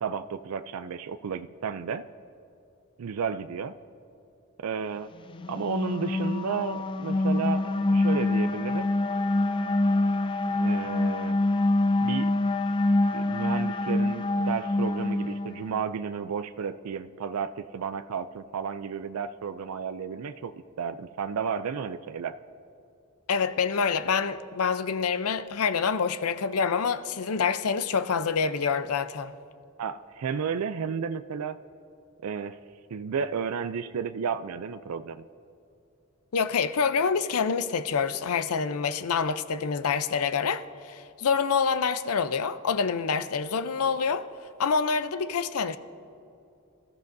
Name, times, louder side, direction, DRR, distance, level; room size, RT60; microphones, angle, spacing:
voice 1, 0.0-2.1 3.0-3.7 4.6-5.1 5.5-8.9 10.6-11.4 12.0-12.3 13.1-22.4 29.8-31.6 32.2-32.6 32.9-35.3, right 6 dB, 85° right, 0.4 m, -32 dB
sound 1, 5.3-15.8, left 2 dB, 25° left, 0.3 m, -26 dB
voice 2, 23.3-29.3 36.3-44.3 44.6-45.8, left 5 dB, 85° left, 0.6 m, -26 dB
26.0 x 14.0 x 2.7 m
head